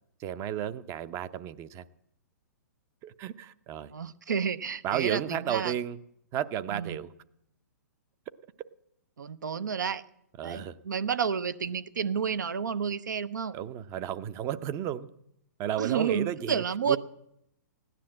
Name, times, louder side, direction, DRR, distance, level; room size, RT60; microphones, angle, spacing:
voice 1, 0.2-1.8 3.0-3.9 4.8-6.0 6.3-7.1 10.4-10.8 13.5-15.1 15.6-17.0, right 10 dB, 30° right, 0.6 m, -33 dB
voice 2, 3.9-5.7 6.7-7.0 9.2-10.0 10.4-13.6 15.8-17.0, right 7 dB, 75° right, 0.7 m, -30 dB
15.5 x 10.0 x 7.5 m
hypercardioid pair, 125°, 10 cm